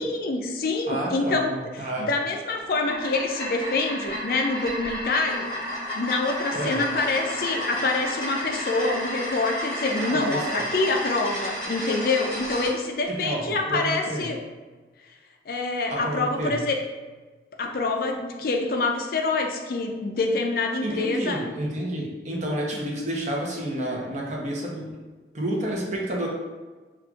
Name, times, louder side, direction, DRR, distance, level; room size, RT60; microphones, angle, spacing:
voice 1, 0.0-5.5 6.0-14.4 15.5-16.8 17.6-21.5 22.7-22.8, left 3 dB, 50° left, 2 dB, 0.4 m, -26 dB
voice 2, 0.9-2.1 6.5-6.9 10.0-10.7 13.1-14.3 15.9-16.6 20.8-25.0 25.3-26.3, right 1 dB, 40° right, -2 dB, 0.7 m, -30 dB
sound 1, 2.6-12.7, equal, 25° left, 1.5 m, -32 dB
5.9 x 2.4 x 2.4 m, 1.3 s
head